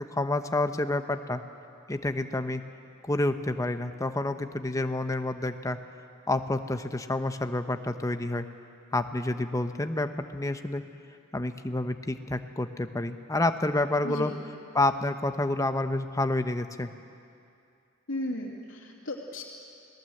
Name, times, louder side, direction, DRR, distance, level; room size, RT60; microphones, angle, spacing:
voice 1, 0.0-1.4 1.9-2.6 3.1-5.8 6.3-8.5 8.9-10.8 11.3-14.3 14.7-16.9, left 2 dB, 15° left, 8 dB, 0.9 m, -29 dB
voice 2, 14.0-14.4 18.1-19.4, left 1 dB, 75° left, -1 dB, 2.6 m, -35 dB
28.5 x 18.5 x 7.9 m, 2.5 s
head